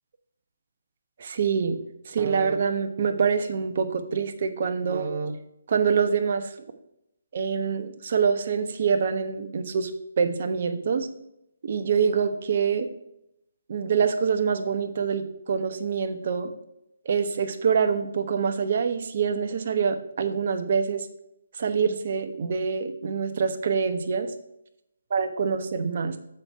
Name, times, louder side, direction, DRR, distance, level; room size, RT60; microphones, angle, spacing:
voice 1, 1.2-1.8 2.1-5.4 5.7-6.5 7.3-9.9 10.2-11.1 11.6-12.9 13.7-16.5 17.0-21.1 21.6-24.3 25.1-26.2, right 6 dB, 50° right, 7 dB, 0.9 m, -25 dB
7.7 x 4.4 x 5.4 m, 0.80 s
hypercardioid pair, 155°, 0 cm